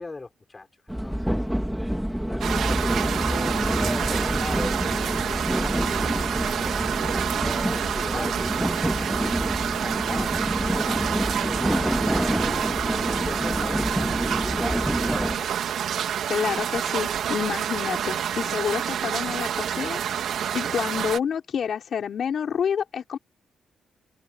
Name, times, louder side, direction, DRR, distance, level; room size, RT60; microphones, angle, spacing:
voice 1, 0.0-1.5 1.7-10.4 10.7-15.5, left 3 dB, 25° left, 6.2 m, -40 dB
sound 1, 0.9-15.3, equal, ahead, 2.6 m, -27 dB
sound 2, 2.4-21.2, right 9 dB, 70° right, 2.4 m, -28 dB
voice 2, 16.3-20.0 20.5-23.2, left 7 dB, 60° left, 4.5 m, -28 dB
open air
cardioid pair, 85°, 0 cm